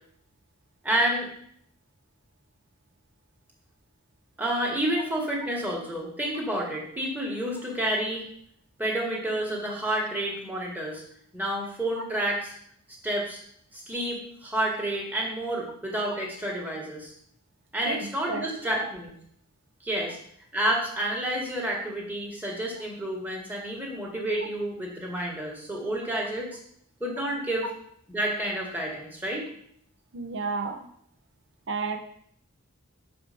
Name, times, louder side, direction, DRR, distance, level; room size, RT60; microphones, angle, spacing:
voice 1, 0.8-1.3 4.4-8.2 8.8-11.0 11.3-12.5 13.0-13.4 13.7-17.1 17.7-19.1 19.8-20.2 20.5-26.6 27.0-27.7 28.1-29.5, right 1 dB, 10° right, -2 dB, 1.8 m, -29 dB
voice 2, 17.8-18.5 27.6-27.7 30.1-30.8 31.7-32.0, right 4 dB, 55° right, 5 dB, 1.0 m, -31 dB
6.1 x 5.0 x 6.8 m, 0.67 s
head